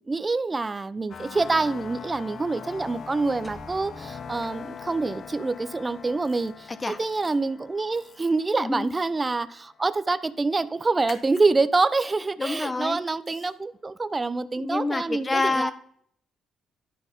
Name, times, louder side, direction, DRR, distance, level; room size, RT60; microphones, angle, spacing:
voice 1, 0.0-15.7, right 3 dB, 25° right, 13 dB, 0.5 m, -26 dB
sound 1, 1.1-9.7, left 6 dB, 55° left, 0.7 m, -42 dB
sound 2, 3.4-5.3, right 1 dB, ahead, 1.4 m, -50 dB
sound 3, 4.4-4.5 6.2-6.5 6.9-7.3 7.9-8.3 8.8-9.2 11.1-11.4 13.3-13.5, left 6 dB, 75° left, 1.3 m, -48 dB
voice 2, 8.6-8.9 12.4-13.0 14.6-15.7, left 3 dB, 25° left, 11 dB, 0.9 m, -27 dB
11.0 x 4.0 x 5.2 m, 0.68 s
cardioid pair, 90°, 0 cm